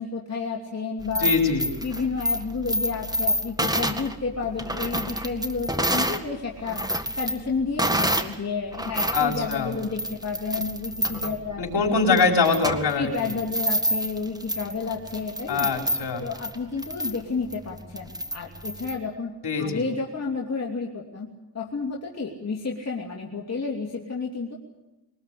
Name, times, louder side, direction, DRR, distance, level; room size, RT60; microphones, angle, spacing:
voice 1, 0.0-1.3 1.8-6.8 7.1-12.2 13.0-15.7 16.2-19.3 19.6-21.3 21.5-24.6, left 4 dB, 35° left, -1 dB, 3.0 m, -31 dB
sound 1, 1.0-6.2 6.6-8.4 8.7-19.0, equal, 10° right, 1.9 m, -28 dB
voice 2, 1.2-1.7 9.1-9.7 11.6-13.3 15.5-16.2 19.4-19.8, left 4 dB, 60° left, 2 dB, 5.0 m, -23 dB
22.5 x 20.0 x 8.5 m, 1.1 s
cardioid pair, 70°, 45 cm